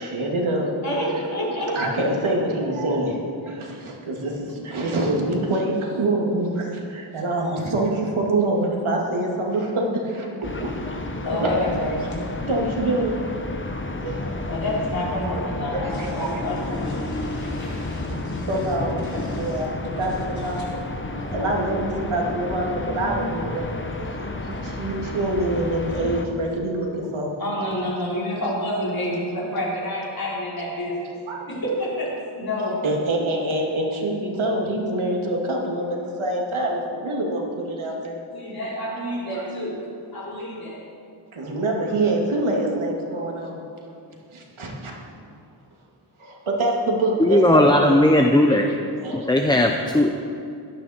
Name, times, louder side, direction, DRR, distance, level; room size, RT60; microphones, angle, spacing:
voice 1, 0.0-0.7 1.7-3.2 3.5-10.5 11.3-11.5 12.5-13.1 14.0-14.3 15.7-16.3 18.5-19.0 19.4-20.6 21.3-27.3 31.3-31.5 32.8-38.2 39.3-39.4 41.3-43.6 44.3-44.9 46.2-48.1 48.4-48.6 49.0-49.3, right 1 dB, 80° right, -1 dB, 2.4 m, -25 dB
voice 2, 0.8-1.8 11.1-12.2 14.5-18.5 19.0-19.5 20.6-20.7 27.4-31.1 31.5-32.9 38.3-39.8 40.1-40.8, equal, 45° left, -6 dB, 4.1 m, -28 dB
sound 1, 10.4-26.3, left 2 dB, 25° left, 0.9 m, -31 dB
voice 3, 47.2-48.7 49.1-50.1, left 1 dB, 10° left, 3 dB, 0.5 m, -17 dB
17.0 x 12.5 x 4.4 m, 2.5 s
wide cardioid pair, 160°, 48 cm